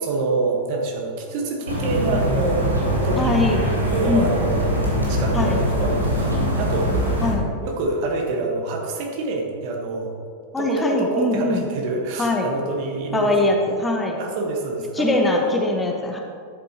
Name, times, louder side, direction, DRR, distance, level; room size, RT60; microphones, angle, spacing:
voice 1, 0.0-2.6 3.0-3.4 3.9-4.7 5.1-7.2 7.6-10.1 10.6-13.3 14.2-15.5, right 2 dB, 45° right, 1 dB, 1.4 m, -26 dB
sound 1, 1.6-7.3, equal, 90° right, 2.0 m, -22 dB
voice 2, 3.2-3.6 4.1-4.3 5.3-5.6 7.2-7.5 10.5-11.6 12.2-12.5 13.1-14.2 14.9-16.2, left 2 dB, 10° left, 1 dB, 1.0 m, -22 dB
11.0 x 8.1 x 3.0 m, 2.3 s
figure-of-eight pair, 90°, 0 cm